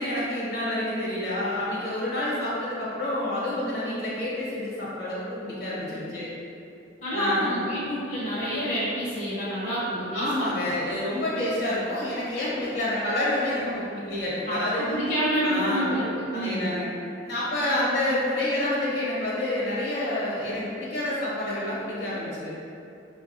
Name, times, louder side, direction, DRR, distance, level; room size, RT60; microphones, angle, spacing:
voice 1, 0.0-6.3 7.1-7.6 10.1-14.9 15.4-16.0 16.3-16.9 17.2-22.5, left 1 dB, 60° left, -8 dB, 1.2 m, -28 dB
voice 2, 7.0-10.7 14.5-16.7, equal, 40° left, -11 dB, 0.9 m, -28 dB
5.4 x 2.3 x 2.6 m, 2.7 s
head